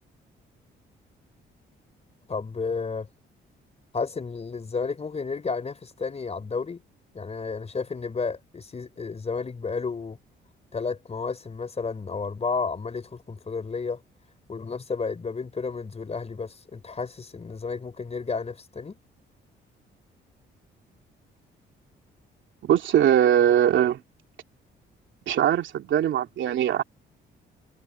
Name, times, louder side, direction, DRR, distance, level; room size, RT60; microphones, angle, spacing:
voice 1, 2.3-3.1 3.9-6.8 7.1-10.2 10.7-14.0 14.5-19.0, left 4 dB, 30° left, 4.6 m, -32 dB
voice 2, 22.6-24.0 25.3-26.8, right 10 dB, 75° right, 3.0 m, -21 dB
cardioid pair, 90°, 20 cm